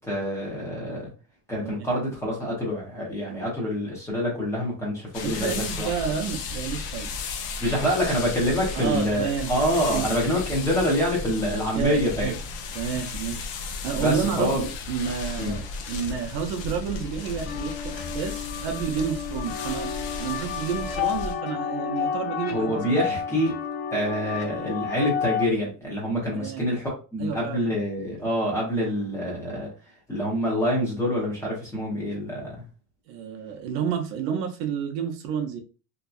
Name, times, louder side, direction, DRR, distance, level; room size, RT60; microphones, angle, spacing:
voice 1, 0.1-1.1 1.5-5.9 7.6-12.3 12.9-13.0 13.9-14.7 15.4-15.6 22.5-23.6 23.9-29.7 30.1-32.5, equal, 10° left, -4 dB, 0.6 m, -26 dB
sound 1, 5.1-21.3, left 4 dB, 55° left, 0.5 m, -34 dB
voice 2, 5.2-7.1 8.7-9.5 9.9-10.0 11.8-12.4 12.7-13.5 13.8-19.9 20.2-23.1 26.3-26.7 27.2-27.6 33.1-35.6, right 7 dB, 60° right, 4 dB, 0.6 m, -30 dB
sound 2, 17.5-25.4, left 8 dB, 90° left, 0.9 m, -31 dB
2.7 x 2.2 x 2.3 m, 0.34 s
cardioid pair, 170°, 37 cm